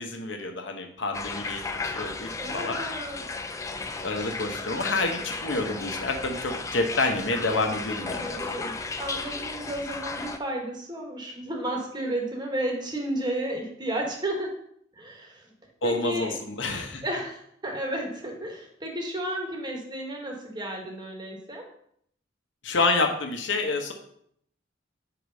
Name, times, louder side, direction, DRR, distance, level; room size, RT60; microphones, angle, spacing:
voice 1, 0.0-2.8 4.0-8.4 15.8-17.0 22.6-23.9, left 3 dB, 70° left, 4 dB, 0.9 m, -28 dB
sound 1, 1.1-10.4, left 3 dB, 15° left, 0.3 m, -34 dB
voice 2, 2.4-3.2 8.0-14.5 15.0-15.5 15.8-16.3 17.0-21.6, right 1 dB, 25° right, 1 dB, 1.1 m, -33 dB
4.8 x 3.9 x 5.2 m, 0.68 s
head